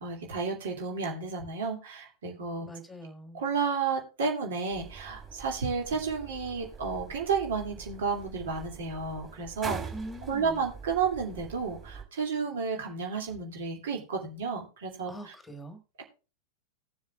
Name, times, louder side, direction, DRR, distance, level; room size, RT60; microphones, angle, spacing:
voice 1, 0.0-2.7 3.3-9.8 10.3-15.3, right 5 dB, 60° right, 2 dB, 2.6 m, -32 dB
voice 2, 2.6-3.4 9.9-10.6 15.1-15.8, right 1 dB, 10° left, 9 dB, 1.5 m, -43 dB
sound 1, 4.7-12.0, right 5 dB, 15° right, 3.8 m, -44 dB
17.5 x 7.2 x 2.4 m, 0.32 s
figure-of-eight pair, 90°, 0 cm